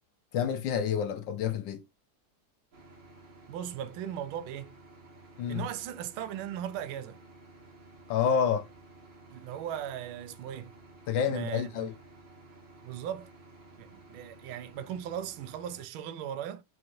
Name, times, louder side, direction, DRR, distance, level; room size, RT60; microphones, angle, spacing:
voice 1, 0.3-1.8 5.4-5.6 8.1-8.7 11.1-11.9, left 7 dB, 75° left, 1.1 m, -28 dB
sound 1, 2.7-15.9, right 2 dB, 60° right, 2.5 m, -54 dB
voice 2, 3.5-4.7 5.5-7.2 9.3-10.7 11.3-11.9 12.8-13.3 13.8-16.6, right 10 dB, 80° right, 1.4 m, -38 dB
6.2 x 3.0 x 2.6 m
omnidirectional pair, 2.3 m